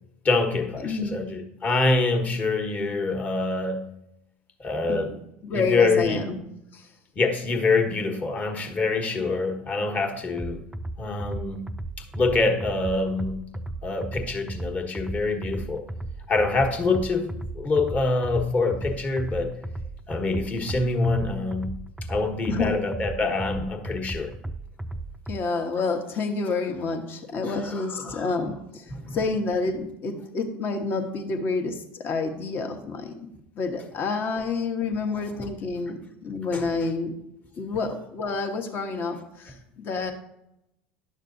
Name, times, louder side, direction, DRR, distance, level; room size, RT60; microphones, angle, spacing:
voice 1, 0.2-3.9 4.6-5.1 5.5-6.2 7.1-10.6 11.0-11.7 12.1-13.4 13.8-15.9 16.3-19.5 20.1-21.8 22.1-24.3 27.5-28.3 28.9-29.2 35.4-35.5 36.5-36.7, left 3 dB, 30° left, 4 dB, 1.3 m, -25 dB
voice 2, 0.8-1.3 4.9-5.0 5.4-6.4 6.7-6.9 22.5-22.7 25.3-33.1 33.6-37.1 37.6-40.1, left 4 dB, 45° left, 5 dB, 1.1 m, -29 dB
sound 1, 10.4-25.4, right 2 dB, 10° right, 0.4 m, -35 dB
10.5 x 6.4 x 2.6 m, 0.84 s
hypercardioid pair, 80°, 5 cm